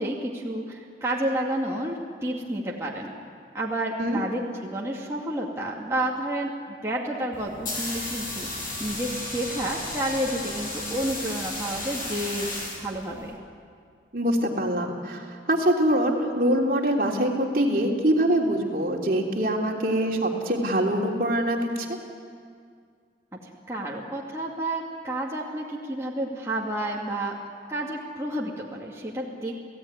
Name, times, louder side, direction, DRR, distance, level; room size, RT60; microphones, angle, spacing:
voice 1, 0.0-3.1 3.5-12.5 12.8-13.4 23.4-27.4 27.7-29.5, right 1 dB, 15° right, -4 dB, 2.4 m, -30 dB
sound 1, 7.3-13.3, left 2 dB, 50° left, 7.2 m, -34 dB
voice 2, 14.1-22.0, right 1 dB, 55° right, 0 dB, 3.2 m, -24 dB
29.5 x 17.0 x 9.7 m, 2.2 s
head